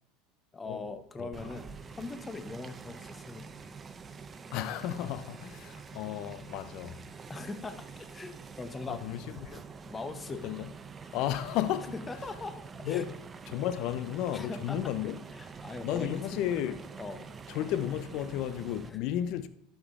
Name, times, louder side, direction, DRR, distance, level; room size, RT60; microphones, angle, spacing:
voice 1, 0.5-1.7 2.0-3.5 7.3-7.9 8.1-9.0 9.9-10.4 12.1-13.0 14.3-14.8 15.4-16.4 17.0-17.4 18.8-19.0, left 3 dB, 20° left, 0.9 m, -40 dB
voice 2, 1.2-1.6 4.5-7.0 8.9-9.6 10.3-10.7 11.1-12.0 12.8-13.2 13.5-15.2 15.8-16.8 17.5-19.5, left 11 dB, 60° left, 0.5 m, -33 dB
sound 1, 1.3-18.9, right 5 dB, 25° right, 0.7 m, -46 dB
11.5 x 5.2 x 3.6 m
hypercardioid pair, 80°, 0 cm